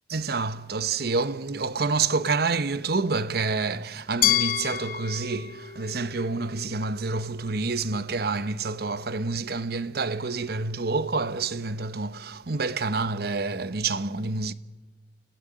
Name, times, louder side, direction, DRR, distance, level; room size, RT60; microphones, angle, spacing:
voice 1, 0.1-14.5, right 4 dB, 60° right, 1.0 m, -28 dB
Glass, 4.2-7.1, left 10 dB, 55° left, 1.1 m, -29 dB
29.5 x 17.5 x 8.8 m
head